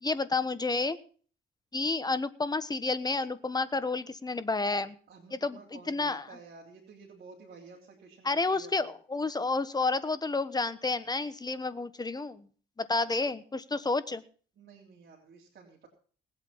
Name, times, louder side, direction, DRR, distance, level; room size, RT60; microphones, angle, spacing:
voice 1, 0.0-1.0 1.7-5.0 5.3-6.2 8.2-12.5 12.8-14.2, left 3 dB, 20° left, 13 dB, 1.2 m, -30 dB
voice 2, 5.1-8.9 14.5-15.9, right 5 dB, 55° right, -1 dB, 3.4 m, -52 dB
19.5 x 8.2 x 5.6 m, 0.43 s
cardioid pair, 90°, 20 cm